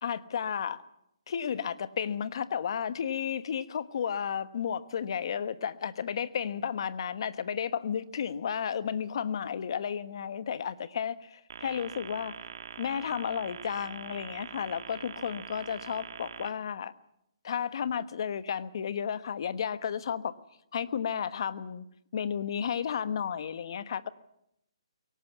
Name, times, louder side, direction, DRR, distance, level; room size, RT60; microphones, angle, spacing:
voice 1, 0.0-0.8 1.3-12.3 12.8-16.9 17.4-20.3 20.7-21.9 22.1-24.1, left 8 dB, 55° left, 14 dB, 1.2 m, -33 dB
sound 1, 11.5-16.5, right 7 dB, 55° right, 1.7 m, -44 dB
22.5 x 18.0 x 7.3 m, 0.78 s
hypercardioid pair, 150°, 3 cm